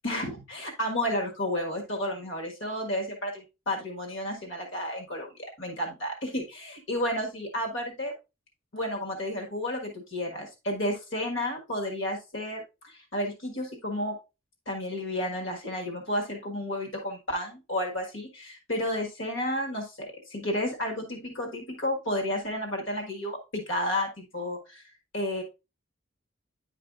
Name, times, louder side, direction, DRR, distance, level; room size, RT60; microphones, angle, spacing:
voice 1, 0.0-8.1 8.7-14.1 14.7-24.8 25.1-25.4, left 1 dB, 65° left, 2 dB, 1.6 m, -32 dB
10.0 x 4.8 x 2.4 m, 0.27 s
head